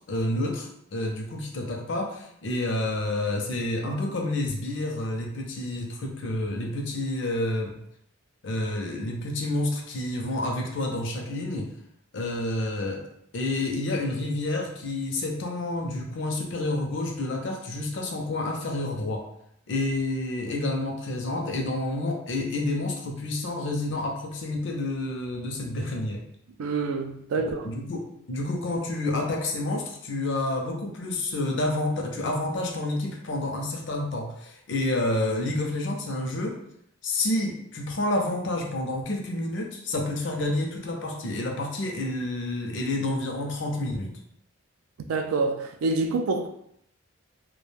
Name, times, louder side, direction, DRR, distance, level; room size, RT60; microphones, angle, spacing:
voice 1, 0.0-7.8 8.4-11.7 12.1-13.0 13.3-19.3 19.7-26.2 27.4-36.6 37.0-44.2, left 2 dB, 55° left, 1 dB, 0.5 m, -29 dB
voice 2, 26.6-27.7 45.1-46.5, right 3 dB, 85° right, 6 dB, 0.3 m, -27 dB
2.3 x 2.1 x 3.1 m, 0.72 s
head